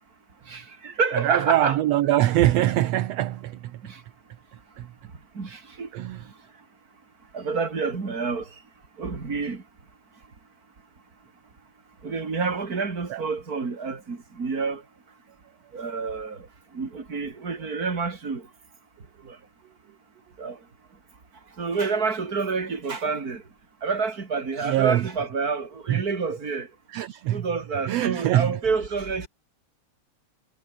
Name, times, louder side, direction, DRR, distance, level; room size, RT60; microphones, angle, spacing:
voice 1, 0.5-1.8 3.9-4.0 5.3-5.9 7.3-8.5 9.0-9.6 12.0-14.8 15.7-16.5 16.7-18.5 19.2-19.4 20.4-20.6 21.6-23.4 23.8-26.7 27.3-29.3, right 4 dB, 30° right, 3.5 m, -28 dB
voice 2, 1.1-3.8 4.8-4.9 5.9-6.2 13.1-13.2 24.7-25.1 25.9-26.0 26.9-27.5 27.9-28.6, right 14 dB, 70° right, 1.9 m, -23 dB
omnidirectional pair, 3.3 m